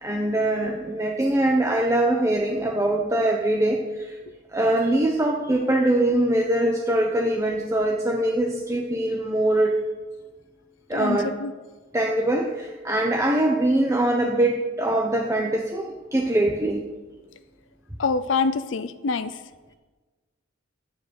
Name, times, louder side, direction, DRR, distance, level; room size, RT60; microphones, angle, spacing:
voice 1, 0.0-4.2 4.5-9.8 10.9-11.3 11.9-16.8, right 1 dB, 15° right, 0 dB, 1.0 m, -23 dB
voice 2, 10.9-11.5 18.0-19.3, left 4 dB, 65° left, 11 dB, 0.6 m, -25 dB
12.5 x 10.5 x 6.5 m, 1.3 s
head